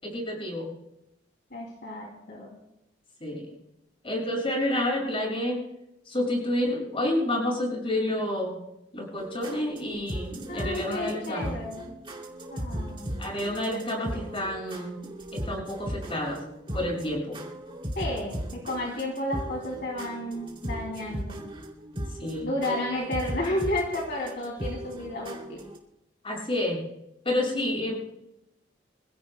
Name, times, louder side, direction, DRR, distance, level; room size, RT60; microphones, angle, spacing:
voice 1, 0.0-0.7 3.2-3.5 4.0-5.6 6.1-8.6 8.9-11.6 13.2-16.4 16.7-17.4 22.2-22.5 26.2-26.8 27.2-28.0, left 1 dB, 30° left, -1 dB, 7.0 m, -29 dB
voice 2, 1.5-2.5 10.5-11.9 12.5-13.2 17.9-21.4 22.4-25.6, left 1 dB, 60° left, -2 dB, 3.0 m, -32 dB
sound 1, 9.2-25.8, equal, 30° right, 3.1 m, -37 dB
27.0 x 16.0 x 2.3 m, 0.84 s
head